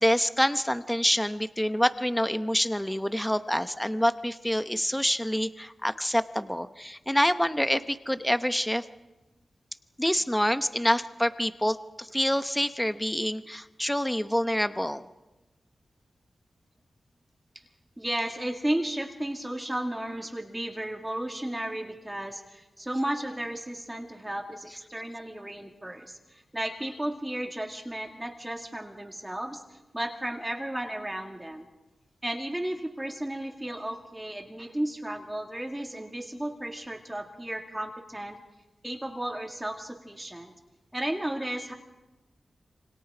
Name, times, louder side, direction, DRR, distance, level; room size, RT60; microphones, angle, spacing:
voice 1, 0.0-8.8 10.0-15.0, equal, 5° left, 11 dB, 0.8 m, -27 dB
voice 2, 18.0-31.7 32.2-38.4 38.8-40.5 40.9-41.7, right 1 dB, 15° right, 2 dB, 2.2 m, -34 dB
28.0 x 25.5 x 4.9 m, 1.1 s
wide cardioid pair, 85°, 0 cm